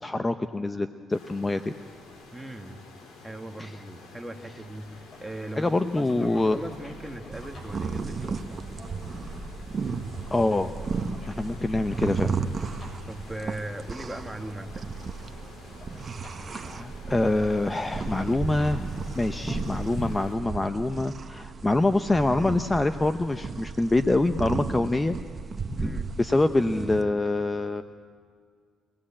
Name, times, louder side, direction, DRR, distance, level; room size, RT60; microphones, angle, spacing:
voice 1, 0.0-1.7 3.6-3.8 5.5-6.6 10.3-10.7 11.3-12.4 16.5-18.9 19.2-25.2 25.7-27.8, left 2 dB, 20° left, 9 dB, 0.8 m, -25 dB
sound 1, 1.1-20.4, left 3 dB, 75° left, 4.6 m, -50 dB
voice 2, 2.3-2.8 3.2-8.7 13.1-14.9 25.7-26.1, right 1 dB, 5° right, 4 dB, 2.1 m, -39 dB
sound 2, 4.6-20.5, left 1 dB, 45° left, 5.7 m, -48 dB
sound 3, 7.3-27.0, right 5 dB, 40° right, 1.2 m, -35 dB
24.5 x 18.5 x 8.8 m, 2.1 s
cardioid pair, 90°, 0 cm